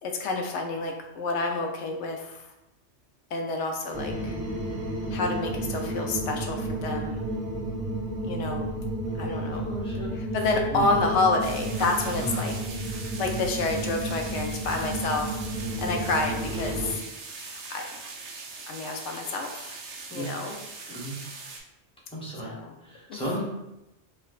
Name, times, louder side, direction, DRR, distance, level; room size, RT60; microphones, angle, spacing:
voice 1, 0.0-2.5 3.3-4.4 5.1-7.2 8.2-8.7 9.2-9.7 10.3-15.4 15.8-16.9 17.4-17.9 18.7-19.8 20.1-20.6 22.4-22.7 23.1-23.2, left 3 dB, 90° left, 2 dB, 0.9 m, -29 dB
sound 1, 3.9-16.9, right 1 dB, 35° right, 0.6 m, -32 dB
voice 2, 9.5-10.1 10.7-10.9 12.2-12.4 20.1-20.3 20.9-21.2 22.1-22.5 22.8-23.4, right 1 dB, 5° left, -6 dB, 0.7 m, -34 dB
sound 2, 11.4-21.6, right 4 dB, 85° right, 0.9 m, -41 dB
4.5 x 2.2 x 2.3 m, 0.91 s
omnidirectional pair, 1.2 m